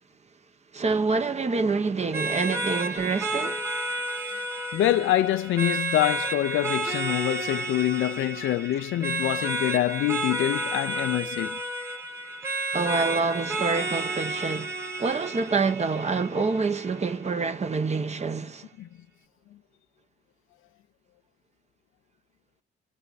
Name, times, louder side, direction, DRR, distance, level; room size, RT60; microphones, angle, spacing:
voice 1, 0.7-3.7 12.7-18.7, right 4 dB, 35° right, 1.2 m, -27 dB
sound 1, 2.1-17.1, right 2 dB, 15° right, 1.5 m, -31 dB
voice 2, 4.7-11.6 18.8-18.9, left 13 dB, 85° left, 0.8 m, -25 dB
24.0 x 8.8 x 4.2 m
cardioid pair, 90°, 20 cm